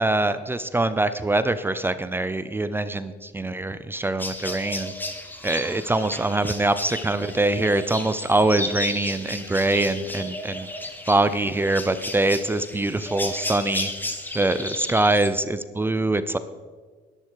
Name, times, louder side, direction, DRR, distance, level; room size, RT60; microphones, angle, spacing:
voice 1, 0.0-4.9 5.4-10.7 11.0-13.9 14.3-16.4, right 2 dB, 15° right, 12 dB, 0.5 m, -23 dB
sound 1, 4.2-15.3, left 1 dB, 10° left, 1.3 m, -34 dB
12.0 x 11.5 x 4.7 m, 1.4 s
cardioid pair, 110°, 17 cm